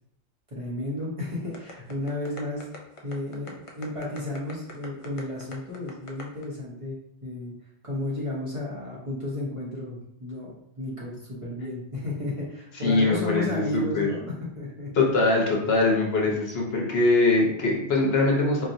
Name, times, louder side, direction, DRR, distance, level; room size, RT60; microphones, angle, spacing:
voice 1, 0.5-2.7 3.0-7.0 7.2-7.5 7.8-11.1 11.4-15.1 16.2-16.3, left 2 dB, 30° right, -6 dB, 1.1 m, -33 dB
sound 1, 1.5-6.4, left 1 dB, 45° left, 0.4 m, -42 dB
voice 2, 12.8-14.1 14.9-18.7, left 2 dB, 65° left, -2 dB, 1.0 m, -22 dB
4.2 x 3.0 x 2.6 m, 0.75 s
omnidirectional pair, 1.2 m